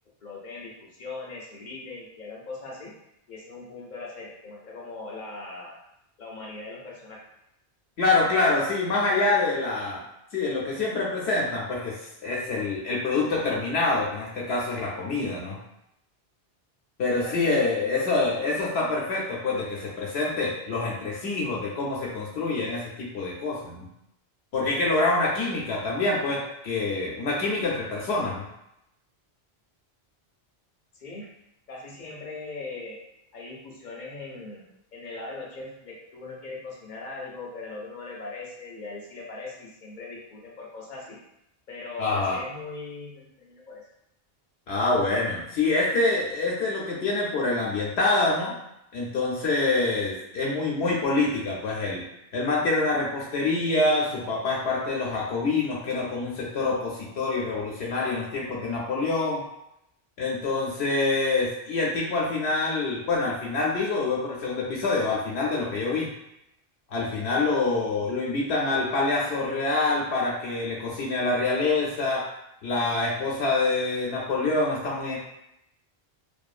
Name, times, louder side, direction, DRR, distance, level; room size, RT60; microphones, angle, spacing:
voice 1, 0.2-2.9 3.3-5.8 6.2-7.2 17.0-18.4 30.9-31.3 31.7-33.0 33.3-34.6 34.9-41.2 41.7-43.8, left 3 dB, 55° left, -2 dB, 0.6 m, -40 dB
voice 2, 8.0-10.0 10.3-12.0 12.2-15.6 17.0-23.9 24.5-28.4 42.0-42.4 44.7-48.5 48.9-52.0 52.3-59.4 60.2-66.1 66.9-72.3 72.6-75.2, left 3 dB, 80° left, -4 dB, 0.8 m, -26 dB
2.6 x 2.3 x 2.4 m, 0.82 s
omnidirectional pair, 1.1 m